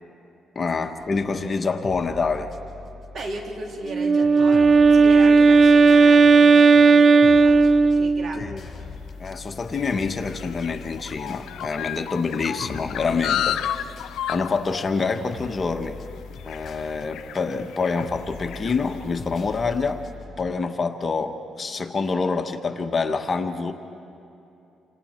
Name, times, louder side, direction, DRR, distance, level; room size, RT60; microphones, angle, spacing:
voice 1, 0.5-2.5 8.3-8.6 9.2-14.0 14.3-16.0 16.4-20.0 20.4-23.7, left 4 dB, 35° left, 5 dB, 1.4 m, -26 dB
sound 1, 1.0-20.5, left 4 dB, 55° left, 5.4 m, -42 dB
voice 2, 3.1-8.5 8.8-8.9, right 2 dB, 55° right, 0 dB, 3.6 m, -36 dB
Wind instrument woodwind instrument, 3.9-8.4, right 4 dB, 40° right, 0.4 m, -14 dB
sound 2, 9.0-19.6, left 10 dB, 85° left, 0.5 m, -33 dB
29.0 x 26.5 x 4.6 m, 2.8 s
cardioid pair, 90°, 0 cm